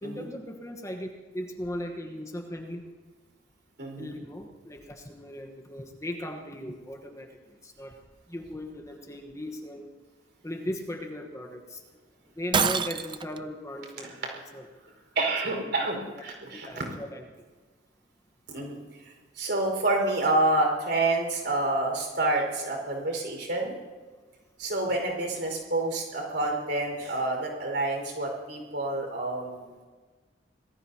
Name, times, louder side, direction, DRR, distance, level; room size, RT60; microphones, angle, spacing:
voice 1, 0.0-1.1 1.3-2.9 4.0-7.3 7.6-8.0 8.3-9.9 10.4-11.8 12.4-14.3 14.5-14.7 15.4-15.7 16.2-16.3 16.6-17.2 24.8-25.0, left 1 dB, 15° left, 2 dB, 1.2 m, -38 dB
voice 2, 3.8-4.2 14.0-14.1 15.1-16.8 18.5-23.7 24.6-29.6, right 2 dB, 65° right, 1 dB, 5.1 m, -28 dB
Shatter, 12.5-13.4, right 6 dB, 25° right, 0.5 m, -26 dB
26.0 x 19.0 x 2.9 m, 1.4 s
head